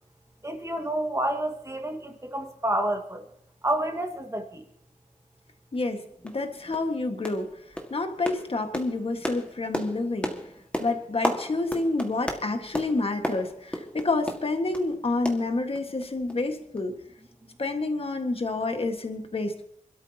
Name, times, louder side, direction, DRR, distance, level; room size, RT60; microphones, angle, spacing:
voice 1, 0.4-3.2 3.6-4.7, right 1 dB, 20° right, 1.9 m, -29 dB
voice 2, 5.7-7.5 7.9-10.3 10.8-16.9 17.6-19.6, left 2 dB, 45° left, 1.7 m, -28 dB
sound 1, 5.7-5.8 6.3-6.4 6.7-6.9 7.2-7.5 7.8-14.9 15.3-16.0 16.3-16.4 16.8-16.9, equal, 10° left, 1.9 m, -34 dB
27.0 x 13.0 x 2.9 m
wide cardioid pair, 115°, 14 cm